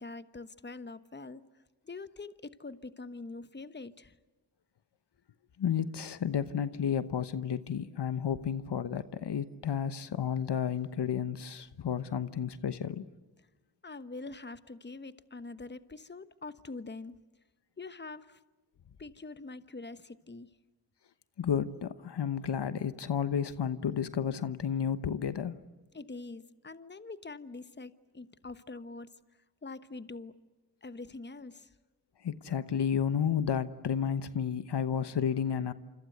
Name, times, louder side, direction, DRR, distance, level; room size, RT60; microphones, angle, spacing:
voice 1, 0.0-1.4 1.8-4.1 13.8-17.2 17.8-18.4 19.0-20.5 25.9-29.1 29.6-30.3 30.8-31.7, left 3 dB, 25° left, 12 dB, 1.2 m, -44 dB
voice 2, 5.6-13.0 21.4-25.6 32.2-35.7, left 8 dB, 70° left, 13 dB, 1.1 m, -32 dB
27.5 x 26.0 x 8.0 m, 1.2 s
cardioid pair, 50°, 42 cm